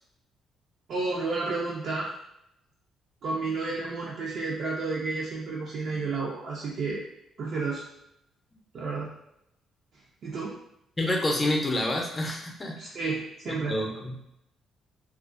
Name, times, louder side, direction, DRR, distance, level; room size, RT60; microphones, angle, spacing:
voice 1, 0.9-2.1 3.2-7.0 7.4-7.8 8.7-9.1 10.2-10.6 12.8-13.8, right 3 dB, 65° right, -5 dB, 0.4 m, -31 dB
voice 2, 11.0-12.8 13.5-14.2, left 1 dB, 25° left, 1 dB, 0.5 m, -28 dB
2.3 x 2.2 x 2.5 m, 0.78 s
cardioid pair, 90°, 0 cm